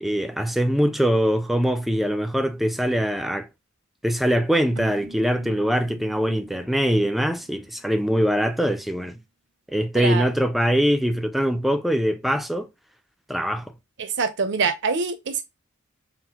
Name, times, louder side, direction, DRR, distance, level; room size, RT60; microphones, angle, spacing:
voice 1, 0.0-3.5 4.0-9.2 9.7-12.7 13.3-13.6, equal, ahead, 0.4 m, -22 dB
Keyboard (musical), 4.7-8.4, equal, 80° right, 1.1 m, -47 dB
voice 2, 9.9-10.3 14.0-15.4, right 5 dB, 60° right, 0.7 m, -25 dB
5.8 x 2.1 x 2.9 m
head